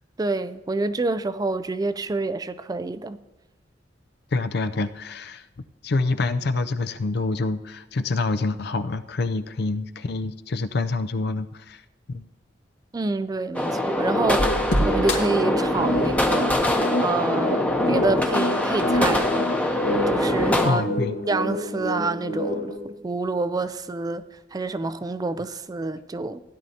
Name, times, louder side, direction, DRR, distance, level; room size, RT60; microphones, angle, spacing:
voice 1, 0.2-3.2 12.9-16.6 17.0-19.8 20.1-20.8 21.3-26.4, right 3 dB, 20° right, 0.3 m, -28 dB
voice 2, 4.3-5.4 5.8-11.8 12.1-12.2 20.6-21.2, left 3 dB, 60° left, 0.5 m, -26 dB
sound 1, 13.5-20.7, left 1 dB, 10° left, 0.8 m, -24 dB
sound 2, 14.4-22.8, left 1 dB, 80° left, 1.9 m, -27 dB
16.0 x 10.5 x 2.8 m
head